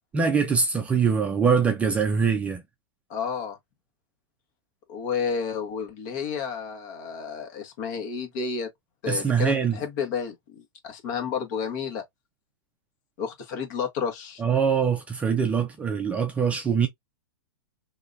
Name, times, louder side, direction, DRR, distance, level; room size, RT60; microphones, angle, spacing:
voice 1, 0.1-2.6 9.1-9.8 14.4-16.9, right 6 dB, 10° right, 0.5 m, -23 dB
voice 2, 3.1-3.6 4.9-8.7 9.0-12.0 13.2-14.4, left 6 dB, 45° left, 1.5 m, -31 dB
3.6 x 2.9 x 2.6 m
hypercardioid pair, 150°, 13 cm